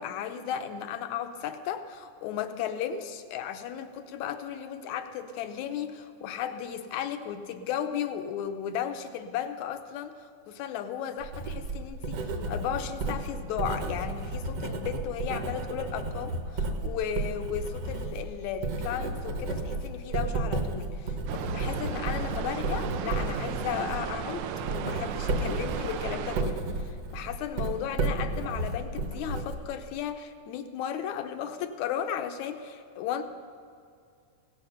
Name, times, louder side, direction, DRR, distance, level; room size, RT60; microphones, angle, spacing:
voice 1, 0.0-33.2, left 9 dB, 75° left, 8 dB, 2.0 m, -35 dB
Writing, 11.2-30.0, right 2 dB, 60° right, 2.0 m, -33 dB
sound 1, 21.3-26.4, right 8 dB, 75° right, 1.9 m, -35 dB
16.5 x 8.4 x 6.8 m, 2.3 s
omnidirectional pair, 3.5 m